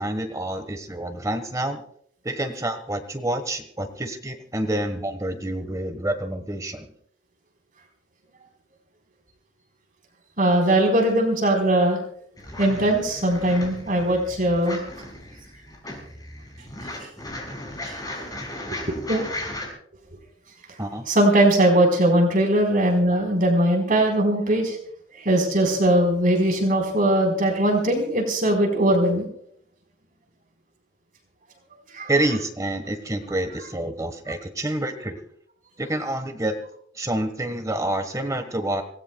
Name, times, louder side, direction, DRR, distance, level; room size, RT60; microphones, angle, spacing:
voice 1, 0.0-1.8 2.2-6.9 20.8-21.1 32.1-35.2 35.8-36.6 36.9-38.8, right 1 dB, 20° right, 8 dB, 1.3 m, -28 dB
voice 2, 10.4-12.0 12.6-14.8 17.8-18.0 18.8-19.2 21.1-24.8 25.2-29.3 31.9-32.1, right 1 dB, 45° right, 1 dB, 4.2 m, -20 dB
sound 1, 12.4-19.7, left 1 dB, 20° left, 6.0 m, -36 dB
26.0 x 18.5 x 2.3 m, 0.65 s
head